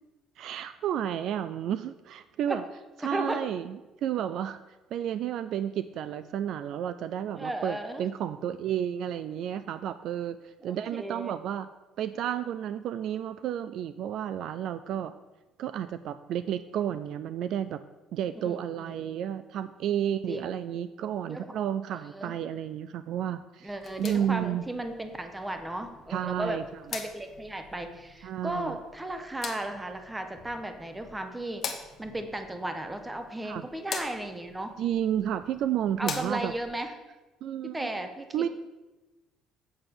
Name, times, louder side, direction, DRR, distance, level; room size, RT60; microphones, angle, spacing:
voice 1, 0.4-2.6 3.0-4.6 4.9-11.7 12.0-15.1 15.6-17.8 18.1-23.7 24.0-24.6 26.1-26.6 28.2-28.8 33.4-33.7 34.8-36.5 37.4-37.9 38.3-38.5, right 10 dB, 50° right, 12 dB, 0.3 m, -31 dB
voice 2, 3.0-3.4 7.3-8.1 10.6-11.3 18.4-19.3 20.3-20.8 21.3-21.5 22.1-22.4 23.6-26.6 26.9-34.7 36.0-36.9 37.6-38.5, right 1 dB, 10° right, 7 dB, 0.8 m, -35 dB
sound 1, 23.7-36.7, left 5 dB, 30° left, 1.0 m, -44 dB
7.7 x 5.9 x 6.9 m, 1.1 s
cardioid pair, 175°, 0 cm